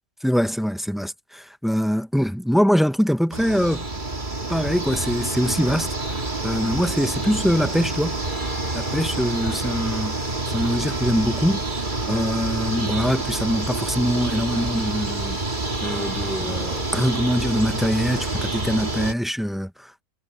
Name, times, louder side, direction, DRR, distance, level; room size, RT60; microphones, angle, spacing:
voice 1, 0.2-3.8 4.5-8.2 8.7-10.2 10.4-11.6 12.1-15.4 15.8-20.0, equal, ahead, 0.7 m, -23 dB
sound 1, 3.3-19.1, right 2 dB, 35° right, 2.5 m, -27 dB
omnidirectional pair, 1.4 m